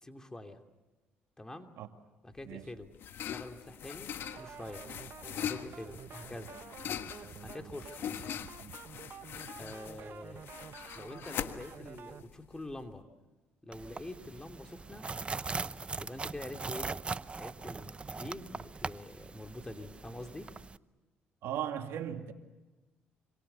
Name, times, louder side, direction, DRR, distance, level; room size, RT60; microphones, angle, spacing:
voice 1, 0.0-0.6 1.4-1.7 2.2-2.9 3.2-4.8 5.4-6.5 7.4-8.1 9.6-10.5 10.9-13.1 13.6-15.1 16.0-16.9 17.3-20.5, left 1 dB, 15° left, 3.0 m, -45 dB
sound 1, 2.4-13.0, left 9 dB, 65° left, 1.5 m, -42 dB
sound 2, 4.2-12.2, right 8 dB, 55° right, 0.9 m, -49 dB
sound 3, 13.7-20.8, right 4 dB, 25° right, 0.8 m, -40 dB
voice 2, 21.4-22.3, right 10 dB, 75° right, 2.2 m, -37 dB
26.5 x 26.0 x 7.0 m
supercardioid pair, 75°, 4 cm